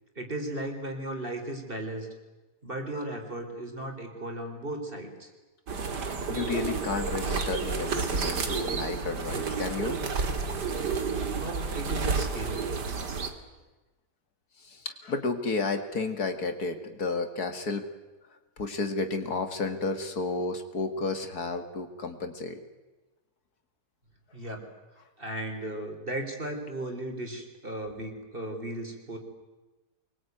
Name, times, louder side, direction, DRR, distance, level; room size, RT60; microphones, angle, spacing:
voice 1, 0.2-2.1 2.6-5.3 11.3-12.6 24.3-24.6 25.2-29.2, right 1 dB, 30° right, 4 dB, 4.0 m, -36 dB
sound 1, 5.7-13.3, right 5 dB, 85° right, 2.7 m, -30 dB
voice 2, 6.3-10.3 14.6-17.9 18.6-22.6, left 3 dB, 65° left, 8 dB, 2.5 m, -32 dB
24.5 x 22.0 x 9.3 m, 1.2 s
omnidirectional pair, 1.8 m